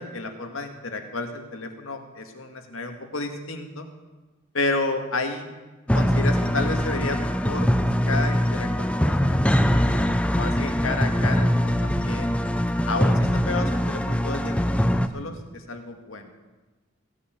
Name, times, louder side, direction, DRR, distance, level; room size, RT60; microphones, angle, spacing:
voice 1, 0.0-3.9 4.5-5.5 5.9-7.7 8.1-12.3 12.8-16.3, left 3 dB, 85° left, 5 dB, 2.0 m, -31 dB
sound 1, 5.9-15.1, equal, 5° left, 0.6 m, -22 dB
17.0 x 8.5 x 9.2 m, 1.2 s
head